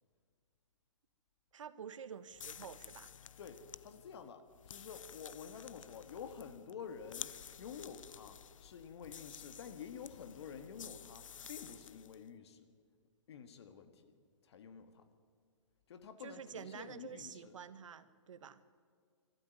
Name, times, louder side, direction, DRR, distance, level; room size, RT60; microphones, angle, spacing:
voice 1, 1.5-3.1 16.2-18.6, right 7 dB, 75° right, 11 dB, 1.3 m, -49 dB
sound 1, 2.3-12.2, left 8 dB, 90° left, 0.6 m, -52 dB
voice 2, 3.4-12.7 13.3-14.1 14.4-15.1 15.9-17.5, left 7 dB, 55° left, 9 dB, 1.7 m, -50 dB
24.0 x 13.0 x 9.3 m, 2.1 s
hypercardioid pair, 155°, 16 cm